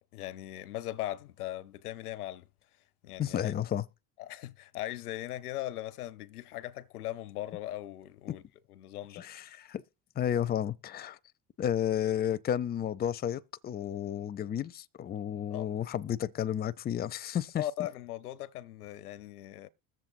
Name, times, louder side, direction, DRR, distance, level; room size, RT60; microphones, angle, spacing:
voice 1, 0.1-2.5 3.0-3.5 4.2-8.4 8.7-9.3 15.5-15.7 17.6-19.7, left 14 dB, 85° left, 0.6 m, -39 dB
voice 2, 3.2-3.8 8.3-8.4 9.2-9.8 10.2-11.2 11.6-17.6, left 10 dB, 20° left, 0.5 m, -32 dB
21.0 x 7.3 x 2.6 m
hypercardioid pair, 65°, 44 cm